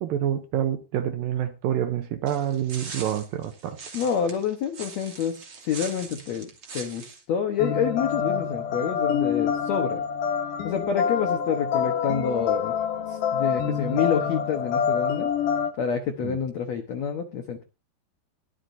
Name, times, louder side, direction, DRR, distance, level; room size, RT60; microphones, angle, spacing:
voice 1, 0.0-3.8 16.2-16.4, right 10 dB, 75° right, 2.2 m, -27 dB
sound 1, 2.3-7.2, right 5 dB, 40° right, 3.1 m, -41 dB
voice 2, 3.9-6.5 6.7-10.0 10.6-12.7 13.1-15.3 15.8-17.6, left 7 dB, 75° left, 1.6 m, -28 dB
sound 2, 7.6-15.7, left 7 dB, 60° left, 3.0 m, -26 dB
22.0 x 8.1 x 2.7 m
omnidirectional pair, 4.8 m